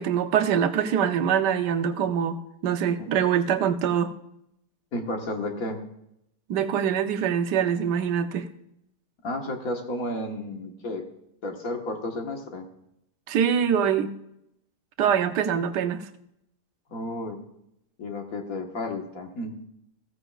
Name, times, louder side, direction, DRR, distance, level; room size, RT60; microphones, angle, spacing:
voice 1, 0.0-4.1 6.5-8.5 13.3-14.1 15.0-16.1, right 8 dB, 80° right, 9 dB, 1.4 m, -24 dB
voice 2, 4.9-5.8 9.2-11.0 11.4-12.7 16.9-17.4 18.0-19.5, left 1 dB, 55° left, 3 dB, 1.7 m, -32 dB
15.5 x 14.0 x 2.4 m, 0.79 s
omnidirectional pair, 1.8 m